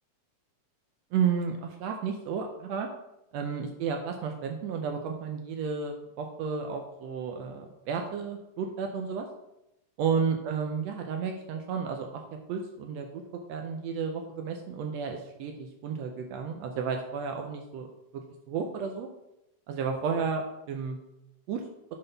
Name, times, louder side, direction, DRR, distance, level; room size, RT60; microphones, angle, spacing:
voice 1, 1.1-2.9 3.3-9.3 10.0-12.2 12.5-13.2 13.5-17.9 18.1-19.1 19.7-21.0 21.5-21.6, right 6 dB, 80° right, 3 dB, 1.5 m, -32 dB
11.0 x 3.9 x 3.9 m, 0.90 s
omnidirectional pair, 3.5 m